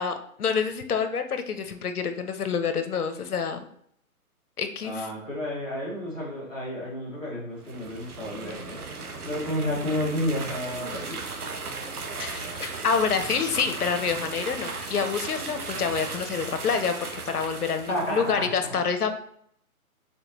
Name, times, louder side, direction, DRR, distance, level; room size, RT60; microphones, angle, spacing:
voice 1, 0.0-3.6 4.6-5.1 12.2-19.1, left 6 dB, 85° left, 8 dB, 0.8 m, -27 dB
voice 2, 4.8-8.8 9.2-11.2 17.9-18.5, left 1 dB, 5° left, -19 dB, 0.5 m, -31 dB
sound 1, 7.6-18.4, right 4 dB, 85° right, 1.1 m, -36 dB
4.4 x 3.8 x 3.0 m, 0.67 s
hypercardioid pair, 150°, 44 cm